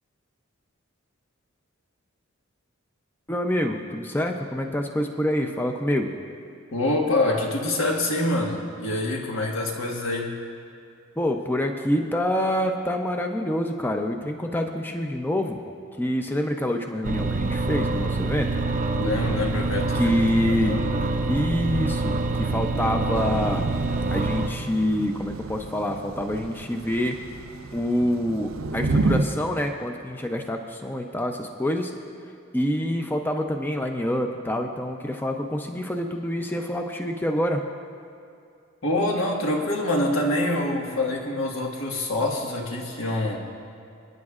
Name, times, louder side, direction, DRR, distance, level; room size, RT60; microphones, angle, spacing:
voice 1, 3.3-6.1 11.2-15.6 16.0-18.5 19.9-20.8 21.3-23.6 24.1-27.2 27.7-31.9 32.5-37.6, left 1 dB, 10° left, 4 dB, 0.5 m, -26 dB
voice 2, 6.7-10.3 18.9-21.1 38.8-43.4, left 1 dB, 80° left, -1 dB, 1.5 m, -26 dB
Agilent Tri-Scroll Vacuum Pump, 17.0-24.5, right 3 dB, 40° right, 0.6 m, -26 dB
Thunder / Rain, 23.1-29.2, right 3 dB, 80° right, 0.6 m, -30 dB
27.5 x 9.6 x 2.4 m, 2.5 s
head